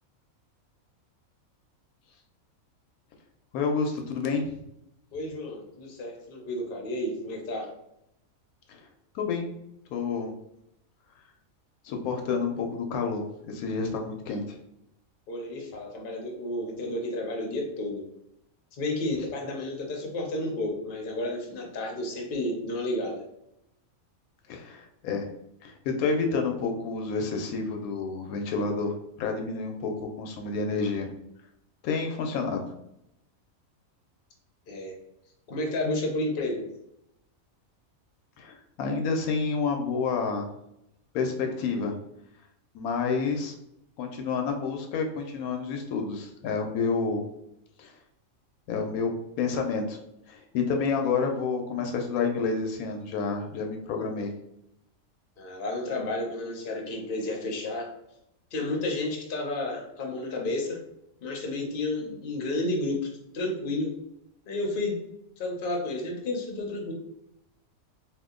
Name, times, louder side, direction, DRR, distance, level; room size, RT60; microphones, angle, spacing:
voice 1, 3.5-4.6 8.7-8.8 9.1-9.5 9.9-10.3 11.8-14.4 24.5-25.3 25.6-28.9 29.2-29.9 30.2-31.1 31.8-32.7 38.4-40.5 41.1-42.0 42.7-43.6 44.0-47.2 47.8-47.9 48.7-50.0 50.3-54.3, left 4 dB, 80° left, 4 dB, 1.0 m, -29 dB
voice 2, 5.1-7.7 15.3-18.0 18.8-23.2 34.7-34.9 35.5-36.6 55.4-57.9 58.5-60.8 61.2-63.0 63.3-64.0 64.5-65.0 65.4-66.9, left 2 dB, 50° left, 0 dB, 0.8 m, -31 dB
2.8 x 2.4 x 3.6 m, 0.80 s
omnidirectional pair, 1.5 m